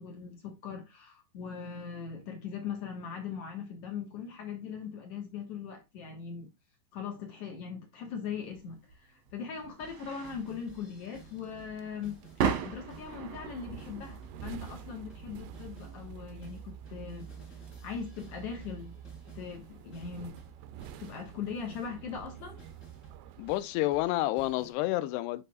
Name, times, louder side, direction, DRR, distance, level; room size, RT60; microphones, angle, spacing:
voice 1, 0.0-6.5 6.9-12.2 12.6-18.9 19.3-20.4 21.0-22.6, left 6 dB, 60° left, 1.7 m, -40 dB
sound 1, 8.5-19.8, right 7 dB, 65° right, 1.7 m, -40 dB
sound 2, 9.6-24.7, right 3 dB, 25° left, 1.8 m, -55 dB
sound 3, 10.3-23.6, right 9 dB, 85° right, 1.9 m, -48 dB
voice 2, 23.4-25.4, left 16 dB, 85° left, 2.7 m, -29 dB
10.5 x 4.1 x 2.4 m
omnidirectional pair, 4.6 m